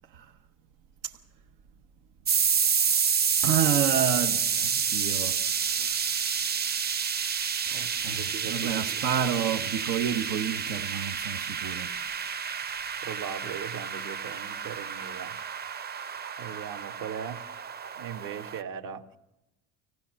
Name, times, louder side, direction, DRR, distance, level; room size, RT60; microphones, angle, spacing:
voice 1, 0.1-0.4 1.0-1.2 3.4-6.2 7.6-12.5, right 9 dB, 90° right, 1.0 m, -30 dB
sound 1, 2.3-18.6, right 7 dB, 25° right, 0.7 m, -29 dB
voice 2, 7.7-9.0 13.0-15.4 16.4-17.4 18.0-19.2, right 8 dB, 65° right, 1.7 m, -39 dB
25.5 x 16.5 x 6.3 m
supercardioid pair, 100°, 37 cm